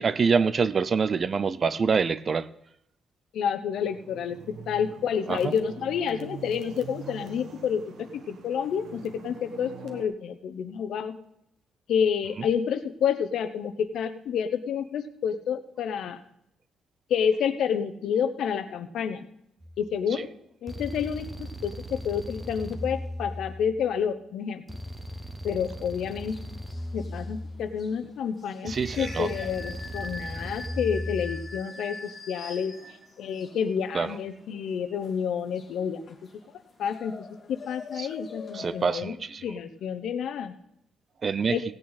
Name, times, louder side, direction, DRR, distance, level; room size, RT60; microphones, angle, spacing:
voice 1, 0.0-2.5 5.3-5.5 20.1-20.2 28.6-29.3 33.9-34.2 38.0-38.1 38.5-39.4 41.2-41.6, right 5 dB, 30° right, 16 dB, 0.4 m, -26 dB
voice 2, 3.3-11.2 11.9-16.2 17.1-19.3 19.8-20.3 20.6-24.6 25.4-26.4 26.9-32.8 33.2-36.1 36.8-39.2 39.4-40.5 41.5-41.6, left 7 dB, 60° left, 10 dB, 0.9 m, -29 dB
sound 1, 3.7-10.0, right 6 dB, 60° right, 1.4 m, -44 dB
sound 2, 19.6-19.9 20.7-23.9 24.7-27.9 28.7-31.6, equal, 10° right, 0.8 m, -37 dB
sound 3, 26.2-38.9, left 3 dB, 30° left, 1.5 m, -44 dB
16.5 x 8.7 x 4.1 m, 0.78 s
cardioid pair, 165°, 0 cm